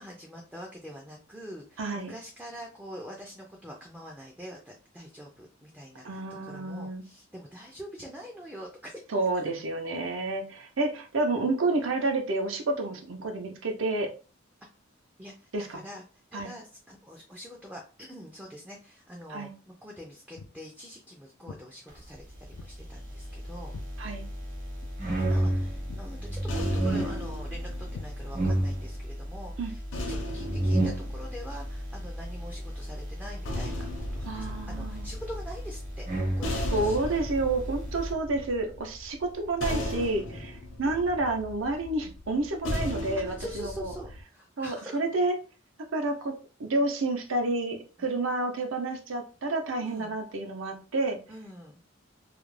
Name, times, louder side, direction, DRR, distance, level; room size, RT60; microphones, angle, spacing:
voice 1, 0.0-9.0 15.2-23.7 25.2-29.8 30.1-37.0 37.3-37.5 40.3-40.5 43.2-45.0 48.0-48.1 49.8-50.1 51.3-51.8, equal, 5° right, -1 dB, 0.4 m, -45 dB
voice 2, 1.8-2.1 6.0-7.1 9.1-14.1 15.5-15.8 16.3-16.5 19.3-19.5 24.0-24.3 29.6-29.7 34.3-35.1 36.7-43.9 44.6-45.4 45.9-46.3 46.6-51.2, right 2 dB, 70° right, 3 dB, 0.6 m, -29 dB
Walk footsteps, 20.3-20.6 21.5-21.7 22.5-22.8 23.1-24.5 24.8-25.0 25.4-25.6 25.9-26.1 26.4-26.7 26.9-27.2 27.9-28.6, left 5 dB, 90° left, 0.3 m, -45 dB
sound 1, 22.7-38.1, right 1 dB, 45° right, 0.9 m, -32 dB
sound 2, 25.8-29.0 29.9-32.2 33.1-44.2, left 1 dB, 65° left, 0.7 m, -37 dB
2.4 x 2.1 x 3.1 m, 0.35 s
head